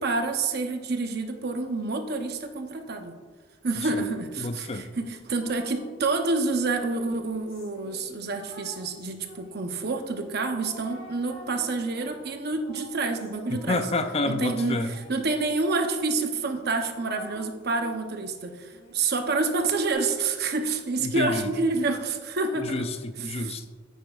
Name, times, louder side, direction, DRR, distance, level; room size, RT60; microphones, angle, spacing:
voice 1, 0.0-3.1 3.6-13.9 14.3-22.8 23.2-23.5, right 3 dB, 50° right, 5 dB, 0.8 m, -28 dB
voice 2, 4.4-4.9 13.5-14.9 21.0-21.5 22.6-23.7, left 2 dB, 30° left, 9 dB, 0.5 m, -29 dB
sound 1, 5.3-6.5 7.2-9.8 10.6-15.3 15.9-16.0 16.3-18.1 18.7-19.9, equal, 75° left, 2.2 m, -48 dB
9.3 x 9.0 x 2.4 m, 1.5 s
head